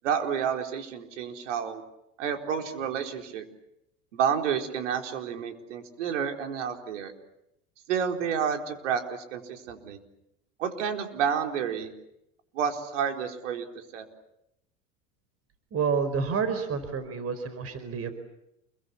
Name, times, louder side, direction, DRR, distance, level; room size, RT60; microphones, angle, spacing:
voice 1, 0.0-1.8 2.2-3.5 4.1-7.1 7.9-10.0 10.6-11.9 12.5-14.1, right 7 dB, 80° right, 5 dB, 4.4 m, -30 dB
voice 2, 15.7-18.1, right 6 dB, 40° right, 11 dB, 4.8 m, -29 dB
29.0 x 23.0 x 8.5 m, 0.83 s
hypercardioid pair, 90°, 36 cm